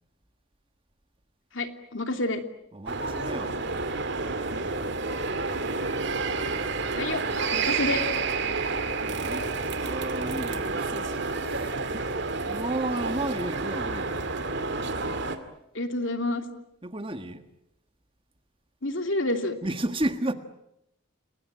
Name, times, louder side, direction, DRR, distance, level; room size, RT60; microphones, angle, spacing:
voice 1, 1.5-2.4 6.9-7.2 7.5-8.0 15.7-16.4 18.8-19.5, left 2 dB, 65° left, 2.8 m, -28 dB
voice 2, 2.7-3.6 9.0-9.4 9.8-12.1 12.5-14.1 16.8-17.4 19.6-20.3, right 1 dB, 25° right, 1.5 m, -32 dB
sound 1, 2.9-15.4, right 3 dB, 55° right, 2.4 m, -29 dB
30.0 x 21.0 x 9.0 m
head